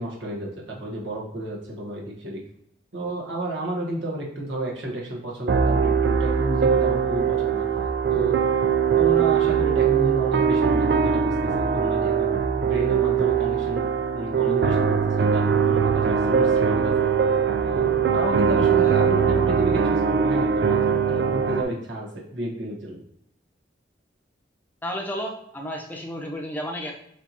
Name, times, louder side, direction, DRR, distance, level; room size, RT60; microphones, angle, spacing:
voice 1, 0.0-2.4 2.9-7.7 8.1-8.4 9.0-12.3 12.6-17.1 17.6-23.0, right 1 dB, 80° right, -3 dB, 1.1 m, -31 dB
sound 1, 5.5-21.6, right 7 dB, 60° right, 0.4 m, -21 dB
voice 2, 24.8-26.9, equal, 10° left, 0 dB, 0.6 m, -32 dB
6.4 x 2.8 x 2.8 m, 0.73 s
head